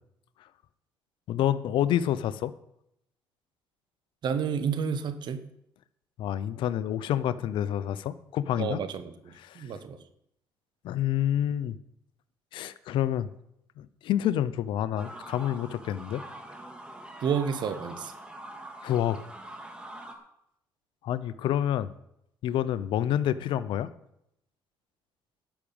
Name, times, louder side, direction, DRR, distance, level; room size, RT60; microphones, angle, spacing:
voice 1, 1.3-2.5 6.2-8.8 9.4-9.6 10.8-11.8 12.5-13.3 13.8-16.2 18.8-19.2 21.0-21.9 22.4-23.9, left 11 dB, 75° left, 15 dB, 0.7 m, -28 dB
voice 2, 4.2-5.4 8.6-10.0 17.2-18.1, right 7 dB, 60° right, 11 dB, 1.3 m, -30 dB
sound 1, 15.0-20.1, right 1 dB, 10° right, 2.3 m, -44 dB
12.0 x 6.3 x 8.9 m, 0.78 s
cardioid pair, 80°, 9 cm